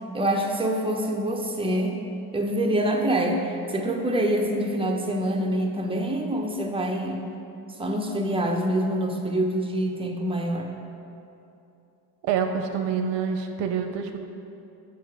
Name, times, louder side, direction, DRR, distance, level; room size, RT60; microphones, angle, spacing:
voice 1, 0.1-2.0 2.3-7.2 7.8-10.7, right 1 dB, 10° right, 1 dB, 1.0 m, -25 dB
voice 2, 12.2-14.2, right 6 dB, 75° right, 6 dB, 0.7 m, -27 dB
7.7 x 5.8 x 4.8 m, 2.8 s
supercardioid pair, 65°, 43 cm